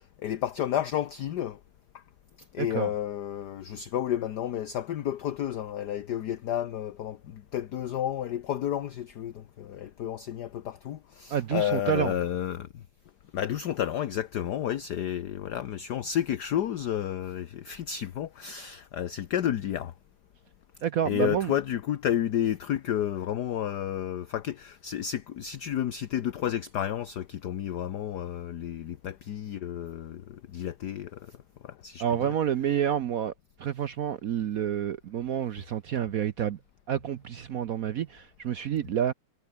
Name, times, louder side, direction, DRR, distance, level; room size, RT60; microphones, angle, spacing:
voice 1, 0.0-1.6 1.9-2.0 2.4-12.8 13.3-19.9 21.0-31.4 31.6-32.3, left 10 dB, 55° left, 1.3 m, -31 dB
voice 2, 2.6-2.9 11.3-12.1 20.8-21.5 32.0-33.3 33.6-36.6 36.9-39.1, right 9 dB, 75° right, 0.8 m, -29 dB
omnidirectional pair, 2.4 m